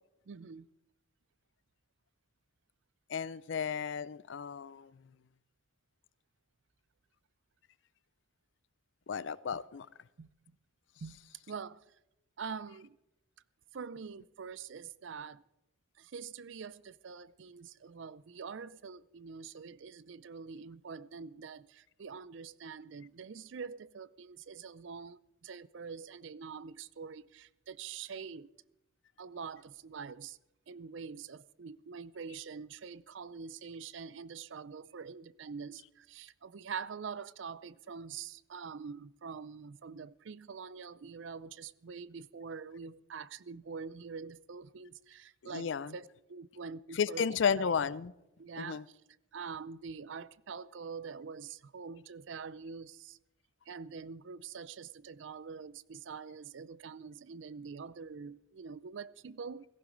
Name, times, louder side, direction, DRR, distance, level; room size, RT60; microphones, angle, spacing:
voice 1, 0.3-0.7 10.2-10.6 11.0-11.2 11.5-11.8 12.4-13.0 13.7-15.4 16.0-28.5 29.2-30.4 30.7-47.8 48.4-49.0 49.3-53.2 53.7-59.7, right 5 dB, 70° right, 0.4 m, -45 dB
voice 2, 3.1-4.9 9.1-9.9 45.5-45.9 47.0-48.1 48.6-48.8, left 6 dB, 65° left, 0.4 m, -33 dB
16.5 x 15.0 x 3.9 m
head